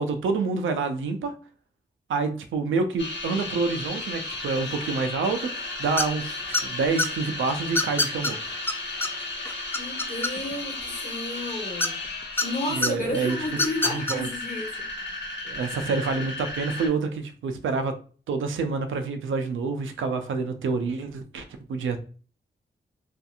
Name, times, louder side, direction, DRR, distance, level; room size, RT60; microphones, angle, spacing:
voice 1, 0.0-1.3 2.1-6.3 6.6-8.4 12.7-13.4 13.9-14.3 15.4-17.9 18.3-22.0, right 4 dB, 85° right, 0.4 m, -27 dB
sound 1, 3.0-16.9, left 2 dB, 70° left, 0.8 m, -34 dB
sound 2, 6.0-6.2 6.5-7.1 7.7-8.3 8.7-8.8 9.0-9.1 9.4-10.6 11.8-12.5 12.8-12.9 13.5-14.1, left 2 dB, 10° left, 0.3 m, -24 dB
voice 2, 9.7-12.0 12.4-14.7, left 1 dB, 40° left, 1.1 m, -32 dB
2.7 x 2.4 x 2.3 m
cardioid pair, 45°, 20 cm